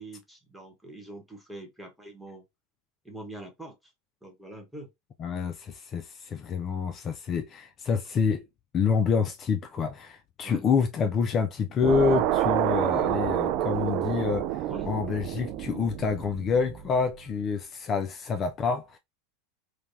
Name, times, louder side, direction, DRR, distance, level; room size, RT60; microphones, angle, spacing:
voice 1, 0.0-2.4 3.0-3.7 4.2-4.9 10.4-10.6 14.7-14.9, right 2 dB, 5° right, 1.1 m, -43 dB
voice 2, 5.2-8.5 8.7-19.0, left 6 dB, 35° left, 0.4 m, -27 dB
sound 1, 11.8-17.1, right 12 dB, 55° right, 0.3 m, -28 dB
3.2 x 2.2 x 2.6 m
hypercardioid pair, 90°, 0 cm